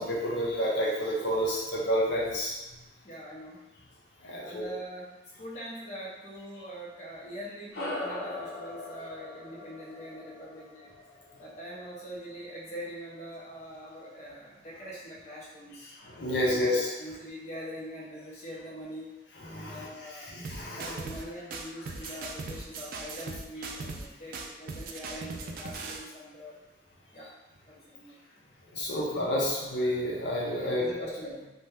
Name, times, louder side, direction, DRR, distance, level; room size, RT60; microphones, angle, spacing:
voice 1, 0.0-2.8 4.2-4.6 16.0-16.9 19.4-20.9 28.7-31.1, equal, 85° left, -5 dB, 0.7 m, -30 dB
voice 2, 3.0-3.6 4.4-10.9 11.4-16.0 16.4-19.1 19.7-20.3 20.8-26.6 27.1-27.3 27.7-28.2 30.7-31.5, equal, 40° left, -6 dB, 0.7 m, -43 dB
sound 1, 7.7-12.5, left 2 dB, 65° left, 1.0 m, -40 dB
sound 2, 20.4-21.2 21.5-24.1 24.3-26.0, right 3 dB, 55° right, 0.3 m, -39 dB
2.7 x 2.2 x 3.3 m, 1.0 s
head